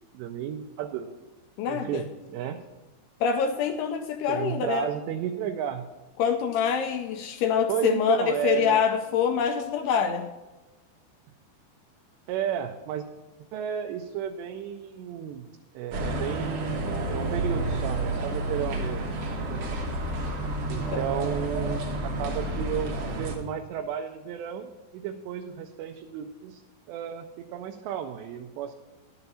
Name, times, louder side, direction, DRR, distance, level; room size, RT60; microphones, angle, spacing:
voice 1, 0.1-1.2 1.6-2.6 4.3-5.9 7.7-8.8 12.3-13.1 13.5-15.5 15.8-16.8 17.1-19.0 19.5-19.6 20.7-26.6 26.9-28.7, right 10 dB, 85° right, 4 dB, 2.7 m, -33 dB
voice 2, 1.6-2.0 3.2-4.9 6.2-10.3 20.9-21.1, left 7 dB, 80° left, 6 dB, 2.4 m, -25 dB
sound 1, 15.9-23.4, right 1 dB, 65° right, 1.6 m, -30 dB
11.0 x 6.9 x 5.5 m, 1.1 s
omnidirectional pair, 4.9 m